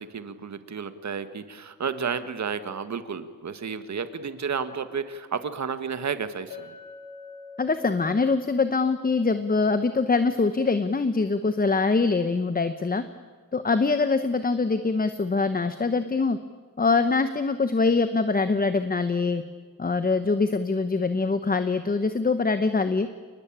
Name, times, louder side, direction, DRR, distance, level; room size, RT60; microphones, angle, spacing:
voice 1, 0.0-6.7, right 6 dB, 50° right, 10 dB, 1.7 m, -32 dB
Chink clink, 6.5-10.9, left 4 dB, 80° left, 4.9 m, -47 dB
voice 2, 7.6-13.0 13.5-16.4 16.8-19.4 19.8-23.1, left 4 dB, 25° left, 10 dB, 1.0 m, -23 dB
28.5 x 20.0 x 8.8 m, 1.5 s
wide cardioid pair, 135°, 36 cm